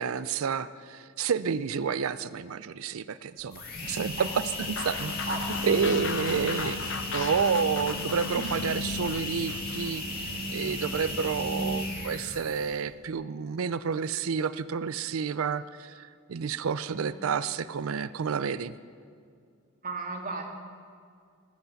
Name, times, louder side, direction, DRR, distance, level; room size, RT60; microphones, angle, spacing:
voice 1, 0.0-5.2 5.6-10.0 10.5-18.7, right 6 dB, 85° right, 15 dB, 0.5 m, -30 dB
sound 1, 3.4-12.9, left 2 dB, 45° left, 2.1 m, -34 dB
voice 2, 3.8-4.3 5.3-5.8 8.3-8.6 16.9-17.1 19.8-20.4, right 3 dB, 40° right, 2 dB, 1.9 m, -36 dB
sound 2, 4.8-9.9, left 5 dB, 60° left, 0.8 m, -38 dB
19.0 x 8.1 x 7.1 m, 2.2 s
head